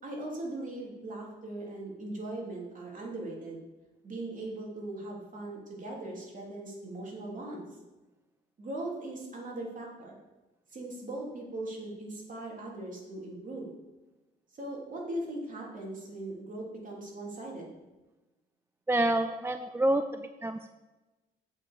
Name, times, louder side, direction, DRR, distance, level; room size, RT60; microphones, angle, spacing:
voice 1, 0.0-3.6 4.0-7.7 8.6-10.1 10.7-13.7 14.6-17.7, right 2 dB, 40° right, -2 dB, 3.2 m, -39 dB
voice 2, 18.9-20.7, right 1 dB, 10° right, 9 dB, 0.4 m, -28 dB
8.1 x 5.6 x 6.7 m, 1.1 s
cardioid pair, 90°, 20 cm